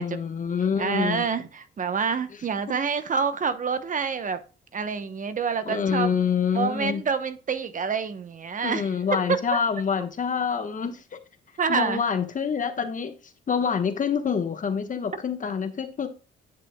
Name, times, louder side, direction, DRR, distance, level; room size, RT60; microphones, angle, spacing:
voice 1, 0.0-1.2 5.6-7.0 8.6-11.2 11.7-13.1 13.5-16.1, left 6 dB, 40° left, 1.2 m, -26 dB
voice 2, 0.8-4.4 4.7-6.1 6.5-8.9 9.5-9.6 11.6-12.0, right 5 dB, 40° right, 0.9 m, -27 dB
10.0 x 6.3 x 2.2 m
cardioid pair, 90°, 20 cm